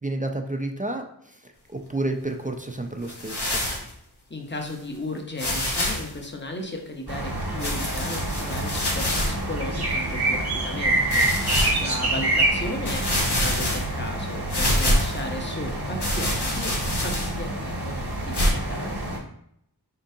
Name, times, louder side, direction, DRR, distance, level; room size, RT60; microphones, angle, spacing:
voice 1, 0.0-3.6 11.1-11.8, right 2 dB, 20° right, 4 dB, 0.4 m, -31 dB
sound 1, 3.1-3.9 4.6-4.7 5.4-6.1 7.6-9.4 10.0-10.1 11.1-11.8 12.4-12.5 12.8-14.1 14.5-15.2 16.0-17.5 18.3-18.5, left 1 dB, 85° left, 1.1 m, -26 dB
voice 2, 4.3-18.9, left 1 dB, 30° left, 2 dB, 0.8 m, -35 dB
sound 2, 7.1-19.2, right 1 dB, 75° right, 1.1 m, -27 dB
4.4 x 3.9 x 2.7 m, 0.73 s
wide cardioid pair, 45°, 39 cm